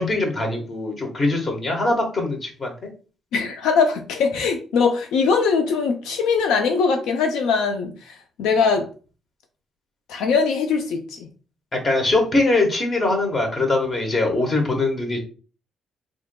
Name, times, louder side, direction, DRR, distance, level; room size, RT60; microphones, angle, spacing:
voice 1, 0.0-2.7 11.7-15.2, left 2 dB, 40° left, 3 dB, 1.2 m, -22 dB
voice 2, 3.3-8.9 10.1-11.3, left 5 dB, 90° left, 4 dB, 0.5 m, -21 dB
3.7 x 3.5 x 2.2 m, 0.37 s
cardioid pair, 90°, 0 cm